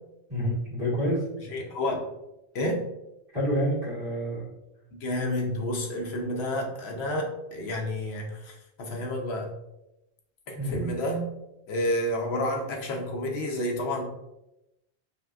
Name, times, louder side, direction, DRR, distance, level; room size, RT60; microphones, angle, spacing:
voice 1, 0.3-1.2 3.3-4.5 10.6-10.8, equal, 60° right, -6 dB, 1.7 m, -28 dB
voice 2, 1.4-2.0 2.5-2.8 5.0-9.5 10.5-11.2 11.7-14.0, left 1 dB, 80° left, 1 dB, 1.0 m, -30 dB
5.4 x 2.2 x 2.4 m, 0.89 s
omnidirectional pair, 1.1 m